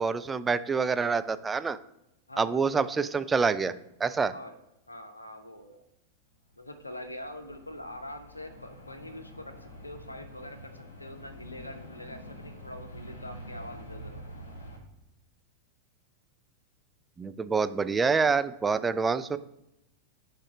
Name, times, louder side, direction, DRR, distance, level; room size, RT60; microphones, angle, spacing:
voice 1, 0.0-1.8 2.4-3.7 4.0-4.3 17.2-19.4, right 5 dB, 15° right, 12 dB, 0.3 m, -26 dB
voice 2, 2.3-2.7 3.7-3.8 4.3-4.6 4.9-5.8 6.6-14.3, left 1 dB, 85° left, 8 dB, 0.7 m, -44 dB
sound 1, 6.5-14.8, equal, 70° left, 1.6 m, -46 dB
4.9 x 4.3 x 4.9 m, 0.88 s
figure-of-eight pair, 90°, 0 cm